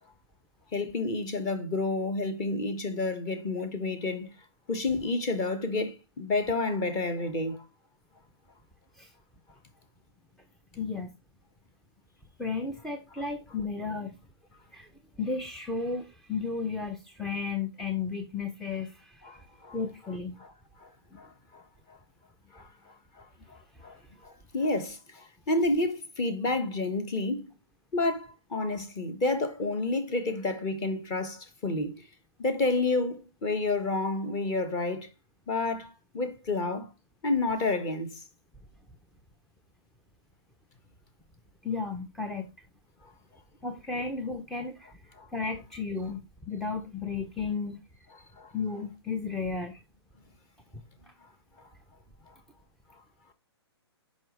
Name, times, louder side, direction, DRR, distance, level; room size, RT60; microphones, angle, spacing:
voice 1, 0.7-4.3 4.7-7.6 19.2-19.8 20.4-20.5 20.8-20.9 21.2-21.6 22.5-22.7 23.2-24.0 24.2-27.5 27.9-32.0 32.4-35.1 35.5-36.9 37.2-38.2 43.0-43.1 45.2-45.3 48.4-48.5, left 2 dB, 25° left, 1.4 m, -30 dB
voice 2, 10.7-11.1 12.4-14.2 14.7-14.9 15.2-19.5 19.7-20.4 41.6-42.5 43.6-47.8 48.5-49.8, left 4 dB, ahead, 0.5 m, -34 dB
10.5 x 5.3 x 3.2 m
hypercardioid pair, 145°, 14 cm